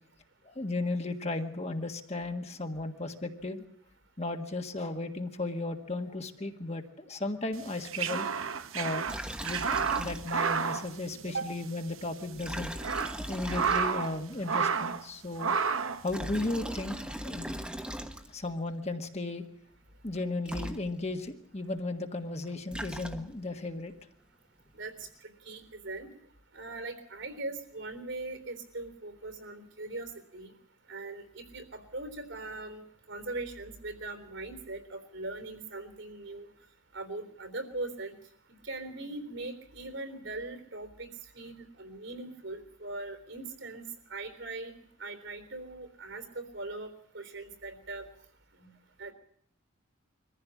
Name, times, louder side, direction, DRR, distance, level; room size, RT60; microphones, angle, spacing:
voice 1, 0.5-3.6 4.2-8.3 8.7-9.1 9.4-9.6 10.0-12.7 13.3-15.5 16.0-17.0 17.2-17.5 18.3-19.4 20.0-23.9, left 2 dB, 30° left, 5 dB, 1.6 m, -35 dB
sound 1, 7.6-11.7 12.0-12.1 12.6-14.2 14.4-15.0 15.4-16.0, right 6 dB, 85° right, 1.1 m, -31 dB
Liquid, 9.1-10.6 10.9-11.0 12.3-14.2 15.9-18.5 20.2-20.3 20.4-21.3 22.4-23.6, equal, 5° right, 1.3 m, -39 dB
voice 2, 24.7-25.1 25.4-26.1 26.5-30.5 30.9-36.5 36.9-38.1 38.6-41.1 41.3-43.8 44.1-44.7 45.0-46.9 47.1-48.1 48.6-48.7 49.0-49.1, right 2 dB, 65° right, 8 dB, 3.7 m, -40 dB
23.5 x 15.0 x 8.4 m, 0.66 s
head